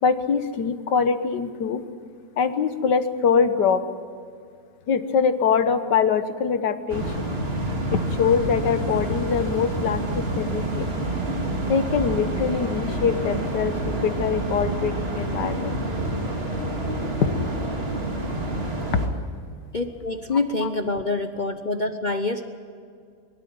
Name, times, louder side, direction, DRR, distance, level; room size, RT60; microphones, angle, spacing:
voice 1, 0.0-1.8 2.4-3.8 4.9-7.3 7.9-10.9 11.7-15.8 18.9-19.1 20.6-20.7, left 6 dB, 80° left, 10 dB, 1.7 m, -23 dB
sound 1, 6.9-19.1, right 1 dB, 35° right, 2.4 m, -28 dB
voice 2, 19.7-22.4, left 3 dB, 40° left, 7 dB, 0.7 m, -26 dB
23.0 x 12.5 x 9.5 m, 2.2 s
omnidirectional pair, 1.8 m